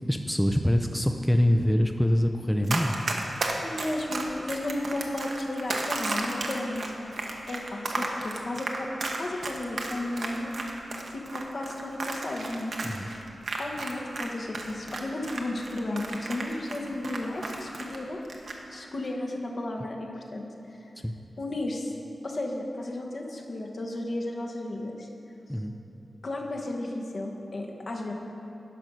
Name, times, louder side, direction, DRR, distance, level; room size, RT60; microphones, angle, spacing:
voice 1, 0.1-2.9 12.8-13.1 21.0-21.1 25.5-25.7, equal, 5° left, 4 dB, 0.4 m, -24 dB
Run, 2.7-14.3 14.5-18.0 18.3-18.6, right 3 dB, 70° right, 1.0 m, -33 dB
voice 2, 3.6-6.9 7.5-10.5 11.1-13.3 13.6-18.2 18.7-20.9 21.4-21.9 22.2-25.1 26.2-28.1, left 1 dB, 55° left, 0 dB, 1.1 m, -34 dB
11.0 x 5.3 x 6.2 m, 2.9 s
wide cardioid pair, 85°, 0 cm